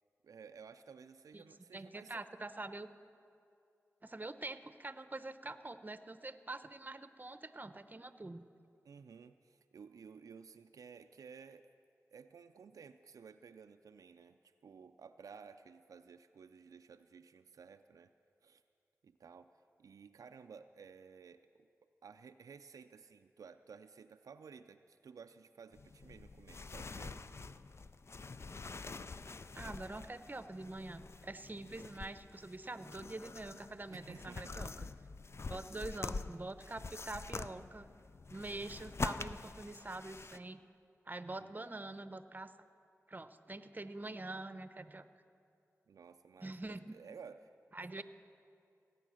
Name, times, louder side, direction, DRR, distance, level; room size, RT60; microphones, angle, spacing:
voice 1, 0.2-2.3 8.8-11.7 12.1-18.1 18.4-18.6 19.0-19.5 19.8-21.7 22.0-27.6 33.9-34.5 35.4-36.1 41.4-41.6 45.9-47.5, right 6 dB, 85° right, 8 dB, 0.3 m, -55 dB
voice 2, 1.7-2.9 4.0-8.4 29.5-34.9 35.5-37.9 38.3-40.6 41.1-42.5 43.1-45.1 46.4-47.0 47.7-48.0, right 2 dB, 30° right, 11 dB, 0.7 m, -45 dB
sound 1, 25.7-40.4, left 4 dB, 50° left, 0.4 m, -46 dB
17.5 x 9.1 x 6.3 m, 2.5 s
cardioid pair, 40°, 6 cm